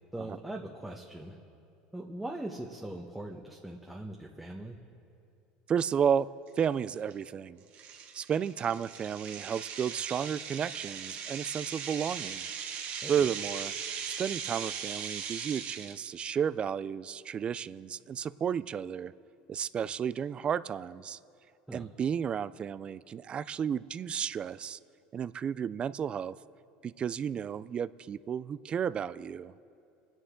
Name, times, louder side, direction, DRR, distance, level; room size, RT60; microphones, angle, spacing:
voice 1, 0.1-1.4 1.9-4.8 13.0-13.3 21.7-21.9, right 1 dB, 5° right, -1 dB, 1.0 m, -41 dB
voice 2, 5.7-6.3 6.6-7.6 8.1-12.5 13.1-13.7 14.1-19.1 19.5-21.2 21.7-24.8 25.1-26.3 26.8-29.5, right 8 dB, 30° right, 17 dB, 0.4 m, -32 dB
sound 1, 5.9-6.0 6.5-6.7 7.1-7.2 7.7-16.1, right 7 dB, 50° right, 1.4 m, -39 dB
28.0 x 9.9 x 3.8 m, 2.6 s
supercardioid pair, 115°, 3 cm